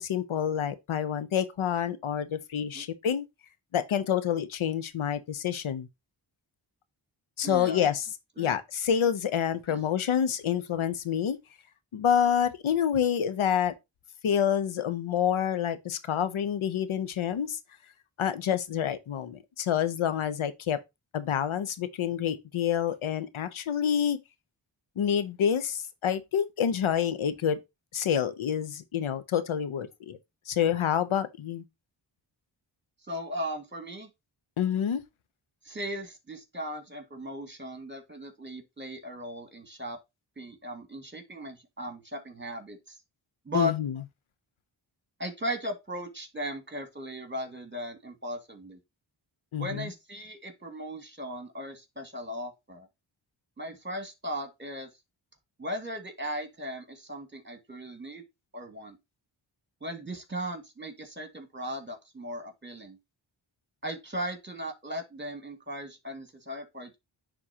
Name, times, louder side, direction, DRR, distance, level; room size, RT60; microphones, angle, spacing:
voice 1, 0.0-3.2 3.7-5.9 7.4-8.1 8.4-11.4 11.9-13.7 14.2-17.6 18.2-20.8 21.1-24.2 25.0-27.6 27.9-30.2 30.5-31.6 34.6-35.0 43.5-43.9 49.5-49.9, left 8 dB, 90° left, 0.8 m, -28 dB
voice 2, 7.4-7.9 8.4-8.5 9.7-9.8 33.1-34.1 35.6-40.0 40.4-43.0 43.5-43.7 45.2-48.8 49.6-52.9 53.6-54.9 55.6-58.2 58.5-59.0 59.8-63.0 63.8-67.0, equal, 25° right, 2.1 m, -37 dB
9.7 x 3.8 x 2.8 m
cardioid pair, 45°, 47 cm